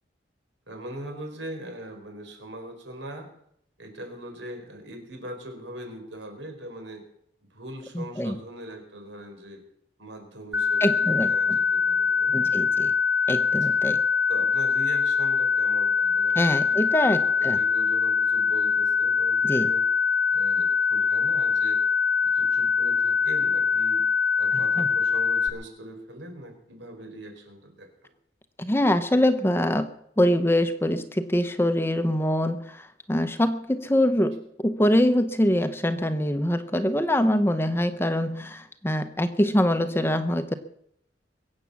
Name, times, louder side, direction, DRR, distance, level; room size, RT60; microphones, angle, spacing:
voice 1, 0.7-3.3 3.8-7.0 7.5-9.6 10.0-12.6 13.3-13.5 14.3-16.8 17.2-19.8 20.3-21.8 22.2-24.0 24.4-28.1, right 1 dB, 80° right, 4 dB, 4.7 m, -41 dB
voice 2, 7.9-8.4 10.8-11.6 12.3-12.9 13.3-14.0 16.3-17.6 19.4-19.7 24.8-24.9 28.6-29.9 30.2-40.5, left 1 dB, 10° left, 10 dB, 0.8 m, -24 dB
sound 1, 10.5-25.5, left 6 dB, 10° right, 1.3 m, -23 dB
22.5 x 8.5 x 7.2 m, 0.71 s
head